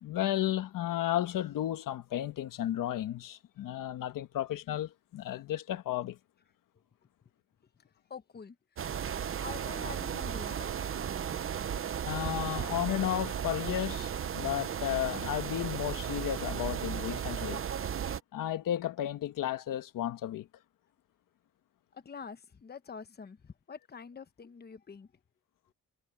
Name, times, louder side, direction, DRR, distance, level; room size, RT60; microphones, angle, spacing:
voice 1, 0.0-6.2 12.1-17.6 18.3-20.5, left 12 dB, 80° left, 1.5 m, -33 dB
voice 2, 8.1-8.9 9.4-10.9 21.9-25.1, left 5 dB, 30° left, 1.2 m, -47 dB
sound 1, 8.8-18.2, right 8 dB, 40° right, 0.8 m, -35 dB
cardioid pair, 105°, 32 cm